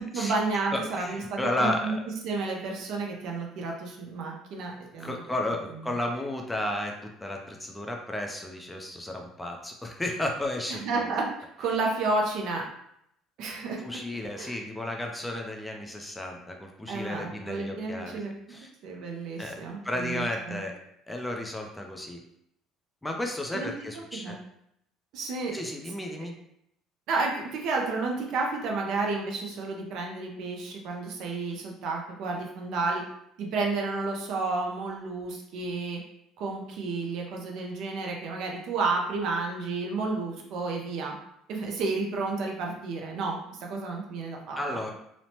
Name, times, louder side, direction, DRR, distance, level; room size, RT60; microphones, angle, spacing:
voice 1, 0.1-1.9 2.2-5.2 10.7-11.3 11.6-12.6 13.4-13.8 14.4-14.6 16.9-18.3 18.8-20.6 23.5-24.4 25.1-25.5 27.1-33.0 33.4-36.0 36.4-41.1 41.5-44.8, right 3 dB, 65° right, 0 dB, 0.5 m, -31 dB
voice 2, 0.7-2.0 5.0-6.9 7.2-10.8 13.8-18.2 18.5-18.7 19.4-19.6 19.8-20.7 21.1-22.2 23.0-24.3 25.5-26.4 44.6-44.9, left 1 dB, 10° left, 2 dB, 0.4 m, -33 dB
3.0 x 2.0 x 2.8 m, 0.75 s
cardioid pair, 120°, 0 cm